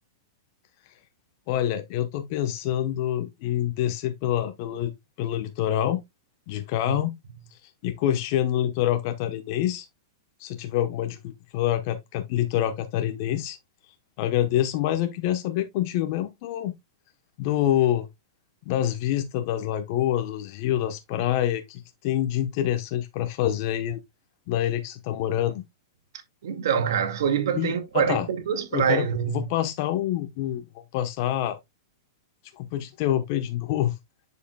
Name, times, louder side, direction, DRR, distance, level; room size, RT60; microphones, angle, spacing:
voice 1, 1.5-4.9 5.2-6.0 6.5-7.1 7.8-9.9 10.4-13.6 14.2-16.7 17.4-18.1 18.7-24.0 24.5-25.6 27.6-28.3 28.7-29.1 29.3-30.6 30.9-31.6 32.6-33.9, left 12 dB, 50° left, 1.0 m, -26 dB
voice 2, 26.4-29.5, right 7 dB, 75° right, 2.0 m, -25 dB
7.5 x 6.6 x 2.2 m
hypercardioid pair, 140°, 2 cm